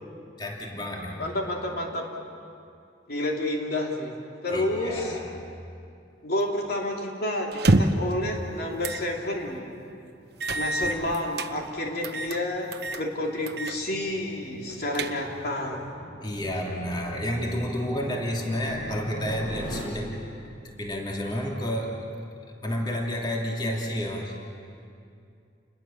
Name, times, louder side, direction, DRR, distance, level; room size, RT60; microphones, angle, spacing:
voice 1, 0.4-1.2 4.5-5.3 16.2-20.1 20.6-22.0 22.6-24.4, equal, 25° left, -1 dB, 2.9 m, -30 dB
voice 2, 1.2-2.3 3.1-4.1 4.4-5.2 6.2-9.7 10.5-15.9, left 1 dB, 55° left, 0 dB, 2.9 m, -30 dB
sound 1, 7.5-8.1 8.8-9.1 9.5-9.6 10.4-11.5 12.0-12.4 12.7-13.0 13.5-13.8 14.1-14.2 14.7-15.5, right 2 dB, 60° right, 1.0 m, -26 dB
sound 2, 9.8-19.8, equal, 80° left, 7.4 m, -42 dB
29.5 x 21.5 x 7.1 m, 2.5 s
head